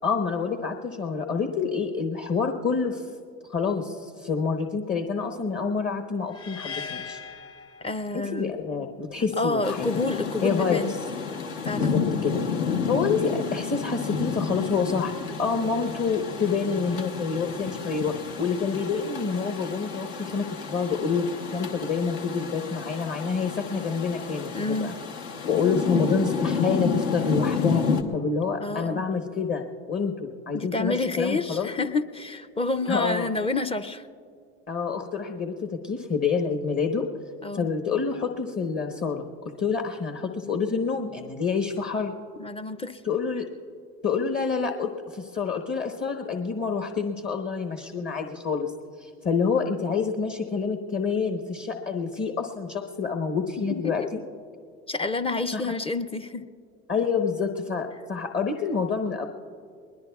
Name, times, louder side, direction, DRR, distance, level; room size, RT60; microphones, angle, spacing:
voice 1, 0.0-3.1 3.5-7.2 8.1-9.9 10.4-10.8 11.8-12.4 12.8-21.3 21.5-24.9 25.5-27.8 28.1-31.7 32.9-33.3 34.7-37.0 37.5-39.3 39.6-42.1 43.0-43.4 44.0-48.7 49.0-54.2 55.5-55.6 56.9-59.2, left 5 dB, 35° left, 4 dB, 1.1 m, -27 dB
sound 1, 6.3-8.5, left 6 dB, 50° left, 2.7 m, -39 dB
voice 2, 7.8-8.5 9.4-11.0 11.6-12.0 24.5-24.9 28.6-29.1 30.5-34.1 37.4-37.7 42.4-43.0 53.7-54.1 54.9-56.4, left 3 dB, 20° left, 11 dB, 0.5 m, -28 dB
Rain, 9.6-28.0, left 5 dB, 80° left, 1.2 m, -30 dB
21.0 x 20.5 x 2.4 m, 2.4 s
hypercardioid pair, 80°, 31 cm